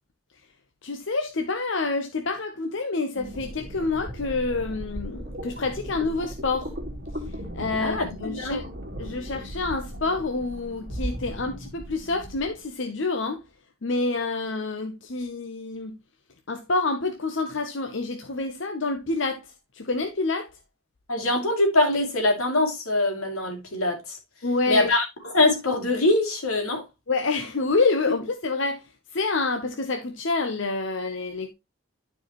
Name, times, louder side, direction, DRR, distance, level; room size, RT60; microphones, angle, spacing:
voice 1, 0.8-6.8 7.5-8.6 9.0-13.4 13.8-16.0 16.5-20.5 24.4-24.9 27.1-28.8 29.1-31.5, left 3 dB, 60° left, 0.8 m, -27 dB
sound 1, 3.1-12.6, equal, 45° right, 2.1 m, -37 dB
voice 2, 7.8-8.6 21.1-24.2 24.7-26.8, left 2 dB, 90° left, 2.7 m, -23 dB
12.0 x 4.7 x 3.0 m
head